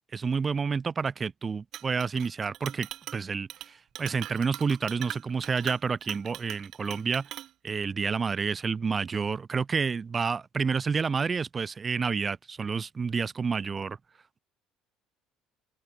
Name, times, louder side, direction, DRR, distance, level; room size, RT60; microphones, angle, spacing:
voice 1, 0.1-7.3 7.6-14.0, right 5 dB, 20° right, 0.5 m, -29 dB
Chink clink, 1.7-2.3 2.5-3.2 3.5-3.7 4.0-7.5, right 13 dB, 50° right, 0.8 m, -41 dB
open air
cardioid pair, 160°, 0 cm